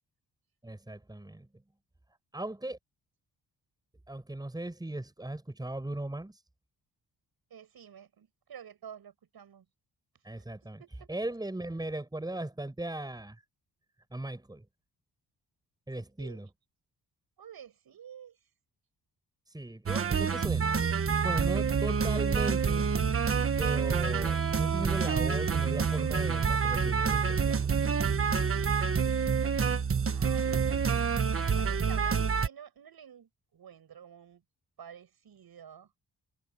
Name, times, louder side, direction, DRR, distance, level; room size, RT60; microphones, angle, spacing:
voice 1, 0.6-1.5 2.3-2.8 4.1-6.4 10.2-10.8 11.1-13.4 14.1-14.6 15.9-16.5 19.5-20.9 21.2-22.9 23.6-27.7, right 1 dB, 10° right, 7.7 m, -38 dB
voice 2, 7.5-9.7 10.4-10.5 10.8-11.1 16.2-16.4 17.4-18.5 30.1-30.8 31.5-34.4 34.8-35.9, right 8 dB, 65° right, 6.9 m, -50 dB
sound 1, 19.9-32.5, right 6 dB, 35° right, 1.2 m, -27 dB
wide cardioid pair, 180°, 40 cm